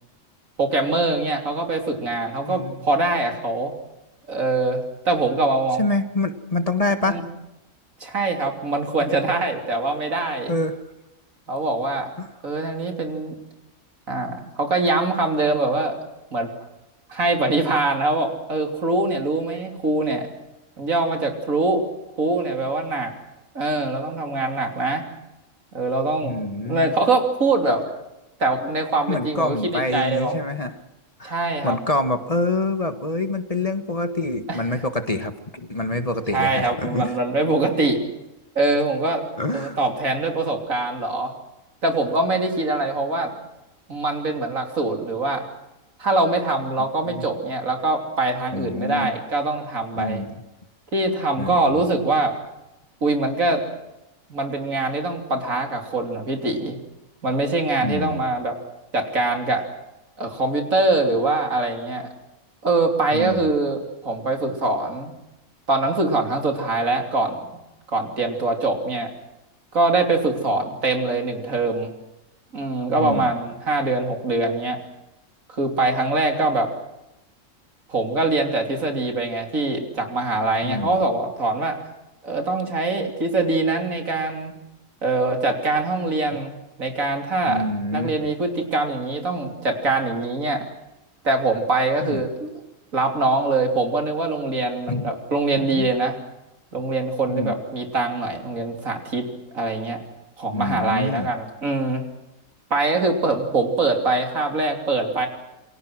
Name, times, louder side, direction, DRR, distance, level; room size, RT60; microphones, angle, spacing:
voice 1, 0.6-3.7 4.3-5.8 7.1-7.2 8.0-10.5 11.5-12.1 12.4-13.4 14.1-16.0 16.3-16.5 17.1-20.3 20.8-21.9 22.2-23.1 23.6-25.1 25.7-26.4 26.7-27.8 28.4-30.3 31.2-31.8 34.5-34.6 36.3-38.0 38.6-39.2 39.5-41.3 41.8-43.3 43.9-45.4 46.0-50.2 50.9-52.4 53.0-53.6 54.3-56.8 57.2-58.6 58.9-59.6 60.2-62.1 62.6-65.1 65.7-67.6 67.9-69.1 69.7-71.9 72.5-74.8 75.5-76.7 77.9-81.8 82.2-84.5 85.0-86.5 86.8-87.7 87.9-90.7 91.2-92.5 92.9-96.2 96.7-99.3 99.5-100.0 100.4-102.0 102.7-105.3, right 2 dB, 90° right, 4 dB, 3.6 m, -23 dB
voice 2, 2.4-2.8 5.8-7.2 9.0-9.1 10.5-10.8 12.2-12.3 26.2-26.9 29.1-30.7 31.2-37.1 39.4-39.8 47.1-47.3 48.5-49.1 50.0-50.4 51.4-51.8 57.8-58.2 63.1-63.5 73.0-73.3 80.6-81.0 87.5-88.2 92.0-92.2 94.9-95.1 95.7-95.9 97.3-97.5 100.5-101.3, left 2 dB, 30° left, 9 dB, 1.5 m, -26 dB
28.5 x 23.0 x 6.2 m, 0.94 s
omnidirectional pair, 1.4 m